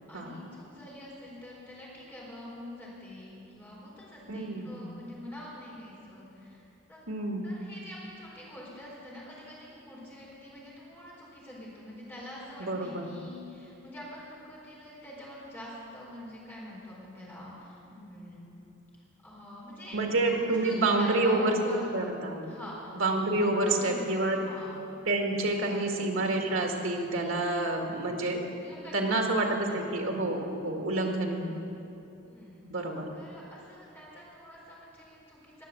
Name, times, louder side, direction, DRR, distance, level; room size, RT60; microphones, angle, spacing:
voice 1, 0.1-7.1 7.4-18.5 19.2-20.0 20.3-21.8 22.4-22.9 23.3-25.0 25.3-25.9 28.6-29.4 29.6-29.7 32.3-32.7 33.1-35.6, left 1 dB, 10° left, -6 dB, 4.4 m, -46 dB
voice 2, 4.3-4.8 7.1-7.5 12.6-13.2 19.9-22.6 22.9-24.4 25.1-28.4 28.9-31.5 32.7-33.1, right 2 dB, 75° right, 2 dB, 2.0 m, -28 dB
21.0 x 7.3 x 7.7 m, 2.8 s
head